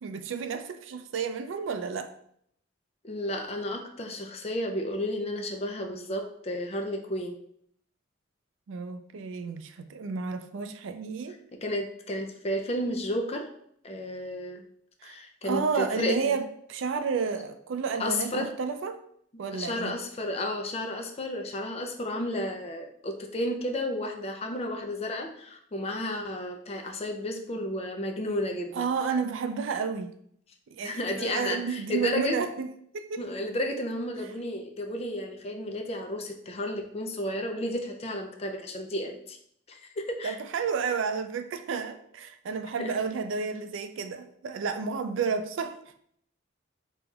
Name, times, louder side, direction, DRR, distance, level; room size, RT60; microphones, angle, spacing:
voice 1, 0.0-2.1 8.7-11.4 15.0-15.2 15.4-19.0 19.4-20.0 28.7-30.1 30.7-32.7 32.9-33.2 40.2-45.8, right 5 dB, 80° right, 0.4 m, -31 dB
voice 2, 3.0-7.4 11.5-13.4 13.8-14.6 15.0-16.3 18.0-18.5 19.5-28.9 30.8-32.4 33.2-39.4 39.7-40.4 42.8-42.9, left 1 dB, 30° left, 0.4 m, -32 dB
5.3 x 2.9 x 2.3 m
head